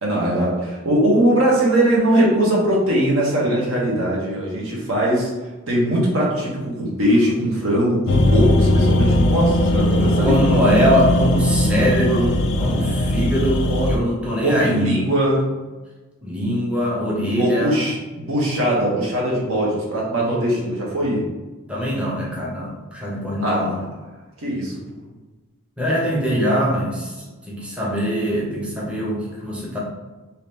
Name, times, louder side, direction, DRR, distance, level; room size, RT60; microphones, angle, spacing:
voice 1, 0.0-5.3 5.7-10.5 13.6-13.9 14.4-15.4 17.4-21.2 23.4-23.8 24.4-24.8, right 1 dB, 80° right, -4 dB, 1.1 m, -20 dB
sound 1, 8.1-14.0, left 1 dB, 60° left, 0.3 m, -19 dB
voice 2, 10.0-14.9 16.2-17.8 21.7-23.8 25.8-27.1 27.5-29.8, equal, 5° right, -5 dB, 0.6 m, -22 dB
2.8 x 2.8 x 3.4 m, 1.2 s
head